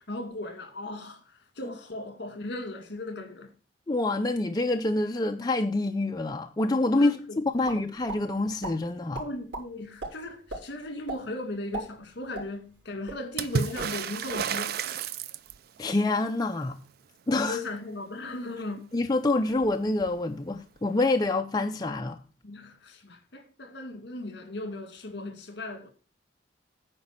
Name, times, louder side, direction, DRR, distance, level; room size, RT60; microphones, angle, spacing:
voice 1, 0.0-3.5 7.0-7.8 9.2-14.8 17.3-19.0 22.4-25.9, left 2 dB, 60° left, 2.0 m, -37 dB
voice 2, 3.9-9.2 15.8-16.8 17.3-17.6 18.9-22.2, left 2 dB, 20° left, 0.5 m, -26 dB
sound 1, 7.6-8.2 8.6-8.7 9.1-9.6 10.0-10.1 10.5-10.6 11.1-11.2 11.6-12.8 13.1-13.2 13.6-13.9, right 2 dB, 80° right, 4.2 m, -36 dB
Water / Splash splatter, 13.4-15.8 19.0-19.1 19.4-20.2 21.3-21.4, right 6 dB, 55° right, 0.4 m, -31 dB
9.7 x 4.8 x 7.3 m
head